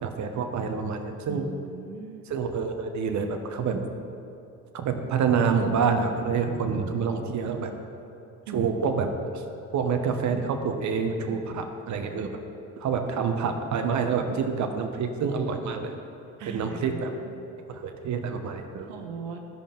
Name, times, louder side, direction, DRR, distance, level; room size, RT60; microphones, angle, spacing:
voice 1, 0.0-1.5 2.3-3.8 4.7-7.7 8.5-9.1 9.3-9.4 9.7-12.3 12.8-15.9 16.5-17.1 17.7-18.9, right 5 dB, 50° right, 5 dB, 1.1 m, -27 dB
voice 2, 1.3-2.3 8.5-9.0 16.4-17.3 18.8-19.4, right 5 dB, 85° right, 3 dB, 1.0 m, -39 dB
13.5 x 5.3 x 5.2 m, 2.7 s
hypercardioid pair, 70°, 37 cm